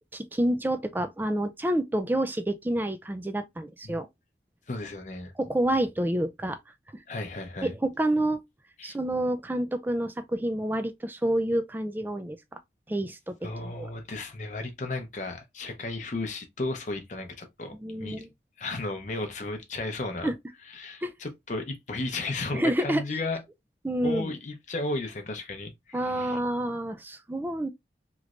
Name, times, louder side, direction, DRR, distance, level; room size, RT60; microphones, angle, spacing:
voice 1, 0.1-4.1 5.4-6.6 6.9-7.0 7.6-8.4 8.8-12.4 12.9-13.9 17.8-18.3 20.2-20.3 21.0-21.1 22.5-23.0 23.8-24.3 25.9-27.7, right 1 dB, 10° right, 0.3 m, -28 dB
voice 2, 4.7-5.3 7.1-7.7 8.8-9.0 13.4-18.2 18.6-20.3 20.7-23.4 24.0-26.4, left 2 dB, 40° left, 0.6 m, -34 dB
3.1 x 3.1 x 2.4 m
head